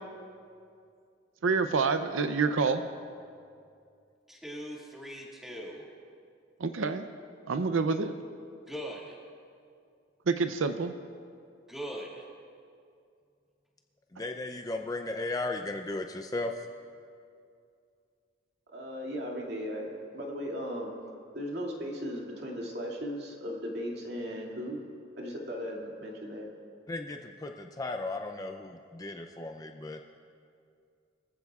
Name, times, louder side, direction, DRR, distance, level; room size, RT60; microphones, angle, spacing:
voice 1, 1.4-2.8 6.6-7.1 7.5-8.1 10.3-10.9, right 4 dB, 85° right, 8 dB, 0.6 m, -27 dB
voice 2, 4.3-5.9 8.7-9.2 11.7-12.3, equal, ahead, -4 dB, 2.1 m, -40 dB
voice 3, 14.1-16.5 26.9-30.0, left 2 dB, 20° left, 4 dB, 0.5 m, -36 dB
voice 4, 18.7-21.0 21.3-24.8 25.2-26.5, equal, 55° right, -2 dB, 2.4 m, -37 dB
23.5 x 15.0 x 2.4 m, 2.4 s
head